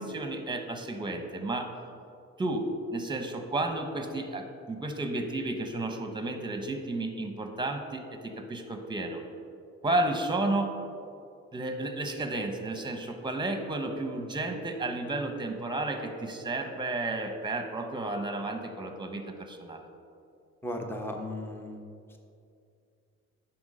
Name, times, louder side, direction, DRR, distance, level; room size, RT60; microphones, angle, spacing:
voice 1, 0.0-1.7 2.4-9.2 9.8-10.7 11.5-19.9, right 2 dB, 15° right, 5 dB, 1.1 m, -32 dB
voice 2, 20.6-21.8, left 1 dB, 5° left, 3 dB, 1.0 m, -36 dB
9.5 x 6.1 x 5.1 m, 2.5 s
cardioid pair, 90°, 30 cm